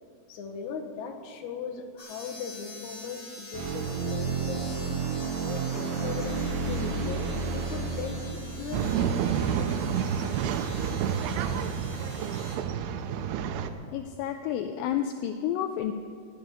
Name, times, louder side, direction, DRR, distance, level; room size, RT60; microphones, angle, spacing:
voice 1, 0.3-10.0, left 5 dB, 65° left, 3 dB, 2.2 m, -38 dB
sound 1, 2.0-12.6, left 1 dB, 25° left, 6.0 m, -46 dB
sound 2, 3.5-10.2, right 5 dB, 70° right, 1.7 m, -32 dB
Male speech man speaking / Chatter / Rattle, 8.7-13.7, right 8 dB, 90° right, 2.8 m, -29 dB
voice 2, 13.9-15.9, left 10 dB, 80° left, 7 dB, 2.1 m, -30 dB
18.5 x 7.1 x 9.4 m, 2.2 s
omnidirectional pair, 4.5 m